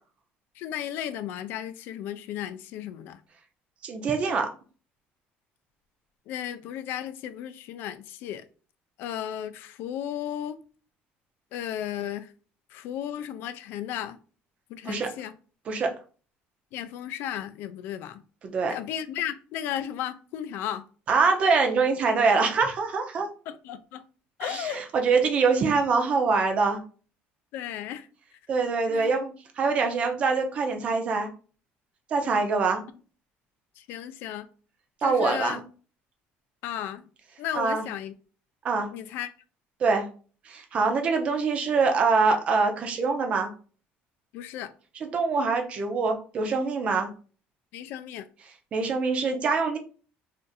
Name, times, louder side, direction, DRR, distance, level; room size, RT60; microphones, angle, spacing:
voice 1, 0.6-3.2 6.3-8.4 9.0-10.6 11.5-12.3 12.7-14.2 14.7-15.3 16.7-18.2 18.7-20.8 23.5-24.0 24.4-24.8 27.5-28.1 28.9-29.1 33.8-34.5 35.0-35.6 36.6-37.1 37.4-38.1 38.9-39.3 44.3-44.7 47.7-48.3, left 10 dB, 60° left, 0.3 m, -34 dB
voice 2, 3.8-4.5 14.8-15.1 15.7-15.9 18.4-18.7 21.1-23.3 24.4-26.8 28.5-31.3 32.1-32.8 35.0-35.6 37.5-37.8 38.6-38.9 39.8-40.1 40.5-43.5 45.0-47.1 48.7-49.8, right 4 dB, 30° right, 0.5 m, -24 dB
2.5 x 2.5 x 3.9 m
cardioid pair, 180°, 4 cm